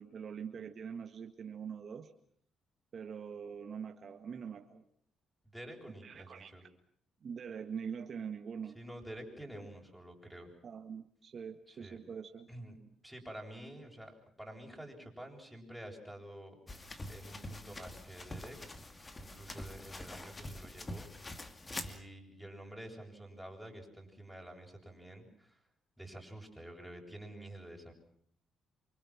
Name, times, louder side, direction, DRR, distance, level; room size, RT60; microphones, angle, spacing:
voice 1, 0.0-2.1 2.9-4.8 6.0-6.5 7.2-8.8 10.6-12.5, right 7 dB, 50° right, 5 dB, 1.9 m, -43 dB
voice 2, 5.4-6.6 8.7-10.5 11.7-12.0 12.5-12.8 13.0-14.1 14.4-16.6 17.1-18.9 19.1-21.1 21.6-25.6 26.0-27.9, right 1 dB, ahead, 0 dB, 8.0 m, -49 dB
sound 1, 16.7-22.0, left 1 dB, 25° left, 2.4 m, -45 dB
28.0 x 25.5 x 6.1 m, 0.62 s
cardioid pair, 90°, 0 cm